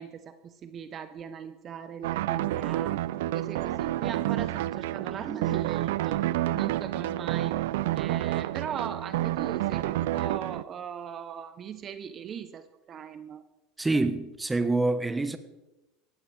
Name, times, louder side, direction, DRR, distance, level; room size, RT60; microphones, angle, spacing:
voice 1, 0.0-3.0 3.3-7.5 8.0-13.4, right 8 dB, 40° right, 1.0 m, -39 dB
sound 1, 2.0-10.6, right 15 dB, 80° right, 0.4 m, -29 dB
voice 2, 13.8-15.4, right 2 dB, 10° right, 1.3 m, -26 dB
17.5 x 15.0 x 3.5 m
supercardioid pair, 110°, 0 cm